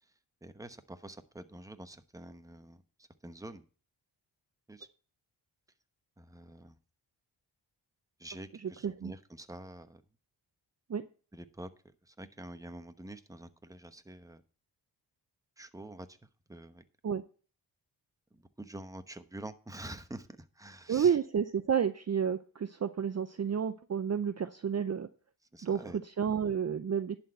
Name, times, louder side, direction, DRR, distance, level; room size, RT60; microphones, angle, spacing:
voice 1, 0.4-3.6 4.7-4.9 6.2-6.8 8.2-10.0 11.3-11.7 12.0-14.4 15.6-16.2 16.5-16.8 18.3-21.2 25.5-26.0, right 1 dB, 5° right, 9 dB, 1.0 m, -47 dB
voice 2, 8.6-9.1 10.9-11.0 17.0-17.2 20.9-25.1 25.6-25.8 26.2-27.2, right 7 dB, 35° right, 11 dB, 0.6 m, -30 dB
11.0 x 4.4 x 7.7 m, 0.38 s
cardioid pair, 70°, 45 cm